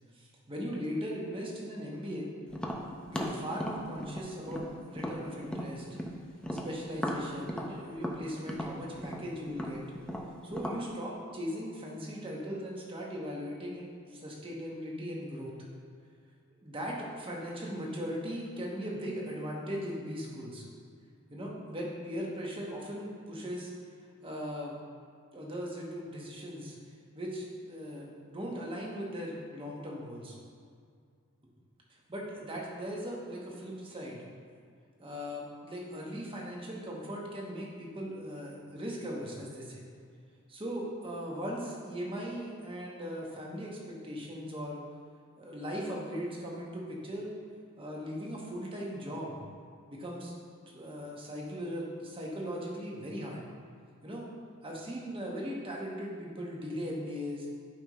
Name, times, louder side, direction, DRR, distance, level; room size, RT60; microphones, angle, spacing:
voice 1, 0.1-2.3 3.1-5.8 6.5-9.8 10.4-15.5 16.6-20.6 21.3-23.7 24.2-24.8 25.3-26.7 27.1-30.4 32.1-34.3 35.0-39.8 40.5-44.8 45.4-47.3 47.8-49.4 49.9-50.3 50.7-53.4 54.0-54.3 54.6-57.5, equal, 25° right, -3 dB, 1.3 m, -38 dB
Tap, 2.5-6.1 6.4-10.8, equal, 5° left, 0.6 m, -37 dB
11.5 x 5.4 x 3.2 m, 2.2 s
head